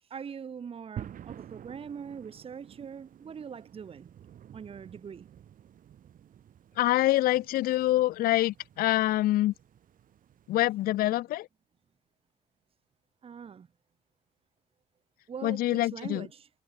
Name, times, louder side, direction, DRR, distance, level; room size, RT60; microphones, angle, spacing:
voice 1, 0.1-4.1 4.5-5.3 13.2-13.7 15.3-16.5, right 7 dB, 35° right, 1.4 m, -42 dB
sound 1, 1.0-11.1, right 10 dB, 55° right, 3.3 m, -50 dB
voice 2, 6.8-9.5 10.5-11.5 15.4-16.3, left 15 dB, 60° left, 0.4 m, -25 dB
cardioid pair, 110°, 17 cm